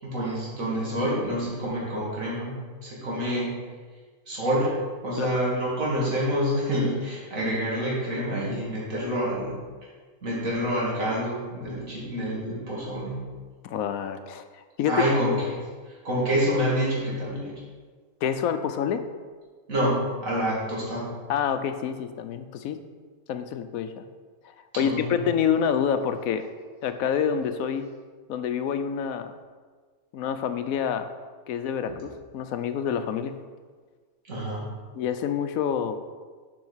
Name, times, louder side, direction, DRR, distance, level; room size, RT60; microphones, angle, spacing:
voice 1, 0.0-2.5 2.8-3.6 4.3-4.7 5.0-9.6 10.2-13.2 14.8-15.6 16.0-17.5 19.7-21.1 24.7-25.1 34.2-34.7, equal, 70° right, -6 dB, 2.9 m, -27 dB
voice 2, 13.6-15.2 18.2-19.0 21.3-22.8 23.3-24.0 24.4-26.4 26.8-27.8 28.3-29.3 30.1-31.1 31.5-33.3 34.9-36.0, left 8 dB, 85° left, 9 dB, 1.0 m, -27 dB
7.7 x 5.6 x 5.6 m, 1.5 s
omnidirectional pair, 1.4 m